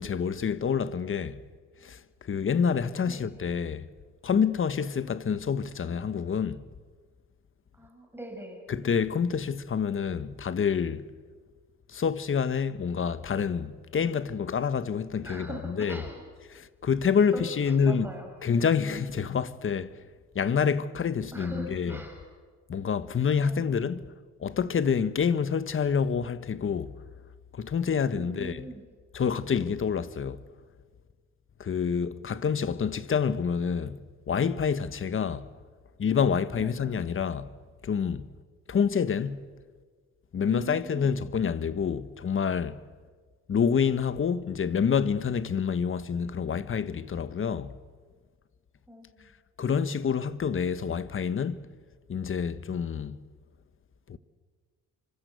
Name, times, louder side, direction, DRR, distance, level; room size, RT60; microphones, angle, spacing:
voice 1, 0.0-1.4 1.8-3.9 4.2-6.6 8.7-11.1 11.9-16.1 16.5-18.1 18.4-20.0 20.3-22.0 22.7-24.1 24.4-26.9 27.5-28.7 29.1-30.4 31.6-35.5 36.0-37.6 37.8-38.3 38.7-39.5 40.3-42.8 43.5-47.7 49.6-51.7 52.1-53.2 54.1-54.2, left 6 dB, 45° left, 1.4 m, -27 dB
voice 2, 7.8-8.6 15.2-16.2 17.3-18.3 21.3-22.1 23.4-23.7 28.1-28.8 36.5-36.7 40.5-41.1 48.9-49.2, right 1 dB, 5° right, 6.7 m, -41 dB
29.0 x 25.5 x 8.2 m
cardioid pair, 90°, 30 cm